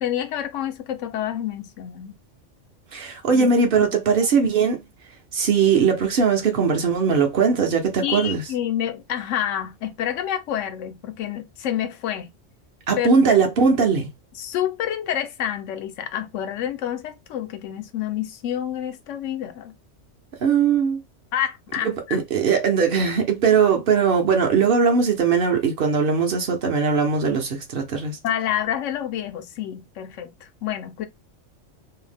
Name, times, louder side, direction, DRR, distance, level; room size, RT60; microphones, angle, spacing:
voice 1, 0.0-2.1 3.3-3.5 3.8-3.9 8.0-12.3 13.0-13.1 14.4-19.8 21.3-22.2 28.2-31.1, left 10 dB, 85° left, 0.9 m, -28 dB
voice 2, 2.9-4.8 5.3-8.4 12.9-14.1 20.4-21.0 22.1-28.2, right 5 dB, 55° right, 0.7 m, -20 dB
2.7 x 2.0 x 3.3 m
omnidirectional pair, 1.2 m